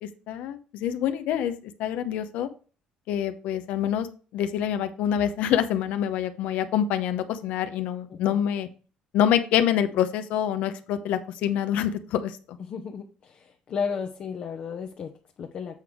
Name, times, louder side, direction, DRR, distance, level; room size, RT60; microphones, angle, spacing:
voice 1, 0.0-1.5 1.8-2.5 3.1-4.1 4.3-8.7 9.1-12.3, left 10 dB, 75° left, 10 dB, 0.8 m, -26 dB
voice 2, 8.1-8.4 12.6-15.8, left 6 dB, 50° left, 3 dB, 0.9 m, -34 dB
8.1 x 3.5 x 6.1 m, 0.38 s
cardioid pair, 95°, 3 cm